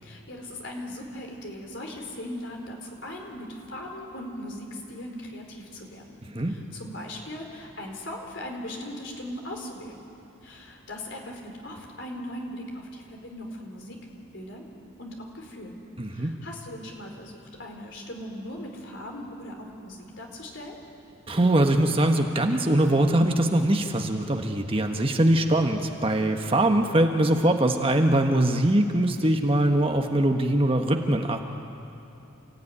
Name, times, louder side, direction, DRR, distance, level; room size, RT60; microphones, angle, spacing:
voice 1, 0.0-6.0 6.4-10.0 10.4-14.0 14.3-14.7 15.0-15.8 16.1-20.8, left 1 dB, 60° left, 1 dB, 4.3 m, -39 dB
voice 2, 16.0-16.3 21.3-31.4, right 1 dB, 25° right, 4 dB, 1.3 m, -22 dB
28.5 x 16.0 x 10.0 m, 2.9 s
head